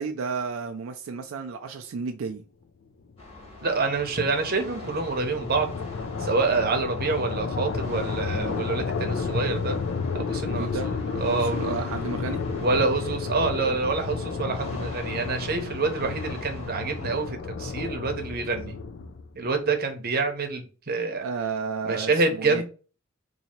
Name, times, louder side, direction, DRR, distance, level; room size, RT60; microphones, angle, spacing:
voice 1, 0.0-2.4 10.6-10.9 11.3-12.5 21.2-22.6, right 5 dB, 85° right, 0.4 m, -32 dB
sound 1, 3.1-19.4, left 4 dB, 65° left, 0.4 m, -32 dB
sound 2, 3.2-17.3, left 2 dB, 30° left, 1.5 m, -45 dB
voice 2, 3.6-5.7 6.2-9.8 10.1-11.8 12.6-18.8 19.4-21.3 21.8-22.6, right 3 dB, 50° right, 0.8 m, -27 dB
2.8 x 2.7 x 4.3 m
head